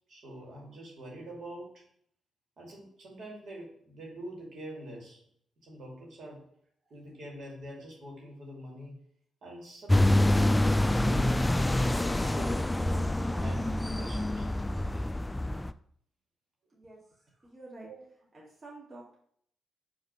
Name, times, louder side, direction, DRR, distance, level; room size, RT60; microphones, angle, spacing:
voice 1, 0.1-1.8 2.6-5.2 5.6-6.5 6.9-8.9 9.4-11.3 12.2-12.7 13.4-14.5 17.9-18.0, right 1 dB, 60° right, -3 dB, 2.5 m, -45 dB
sound 1, 9.9-15.7, left 1 dB, 15° left, 0.3 m, -26 dB
voice 2, 16.7-17.0 17.4-17.9 18.3-19.2, right 2 dB, 35° right, -5 dB, 2.0 m, -48 dB
5.1 x 3.6 x 5.3 m, 0.66 s
hypercardioid pair, 45°, 0 cm